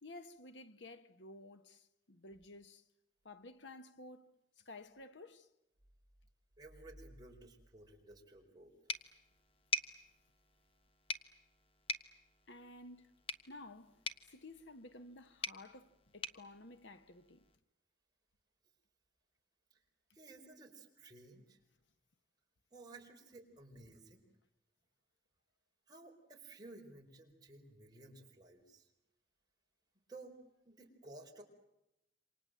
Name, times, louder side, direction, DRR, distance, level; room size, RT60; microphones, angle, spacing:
voice 1, 0.0-2.8 3.2-5.5 12.5-13.1 13.5-14.0 14.3-17.5, left 2 dB, 75° left, 1.4 m, -53 dB
voice 2, 6.6-8.7 19.7-19.8 20.1-21.6 22.7-24.2 25.9-28.9 30.1-30.4 30.6-31.4, right 2 dB, 20° right, 4.5 m, -55 dB
sound 1, 8.9-17.6, left 2 dB, 30° left, 1.2 m, -45 dB
28.0 x 26.0 x 7.7 m
head